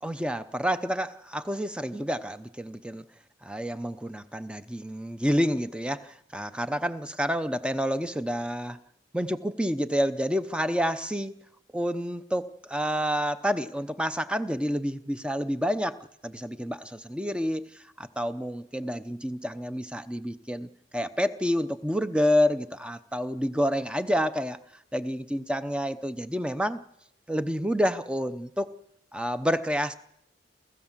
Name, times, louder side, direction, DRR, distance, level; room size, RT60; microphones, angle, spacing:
voice 1, 0.0-3.0 3.4-8.8 9.1-11.3 11.7-24.6 24.9-26.8 27.3-28.7 29.1-29.9, equal, 5° right, 11 dB, 0.7 m, -29 dB
28.5 x 15.0 x 7.4 m, 0.79 s
head